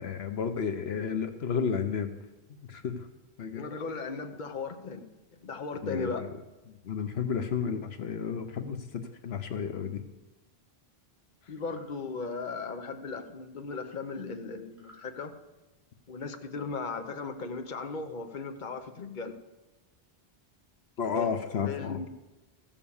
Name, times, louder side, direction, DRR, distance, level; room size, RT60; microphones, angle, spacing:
voice 1, 0.0-2.1 2.5-3.1 3.4-3.6 5.8-6.3 6.7-10.1 11.5-11.6 14.2-14.3 21.0-22.1, left 6 dB, 80° left, 8 dB, 1.1 m, -32 dB
voice 2, 3.5-5.1 5.4-6.2 11.5-15.3 16.1-19.3 21.1-21.3 21.6-22.1, left 4 dB, 50° left, 6 dB, 1.1 m, -37 dB
sound 1, 11.5-11.9 14.7-15.1, left 1 dB, ahead, 4.9 m, -56 dB
15.0 x 7.2 x 7.1 m, 1.1 s
omnidirectional pair, 1.0 m